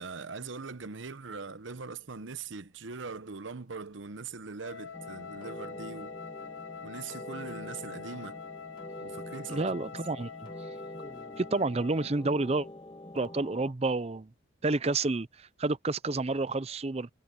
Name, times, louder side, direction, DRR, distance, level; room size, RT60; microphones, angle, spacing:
voice 1, 0.0-6.2 6.8-8.4 9.0-9.7, right 4 dB, 70° right, 0.9 m, -41 dB
Wind instrument woodwind instrument, 4.6-12.2, left 6 dB, 75° left, 0.6 m, -45 dB
sound 1, 4.9-13.7, equal, 25° left, 2.3 m, -45 dB
voice 2, 9.5-10.3 11.4-12.7 13.1-14.3 14.6-17.1, right 3 dB, 30° right, 0.5 m, -29 dB
head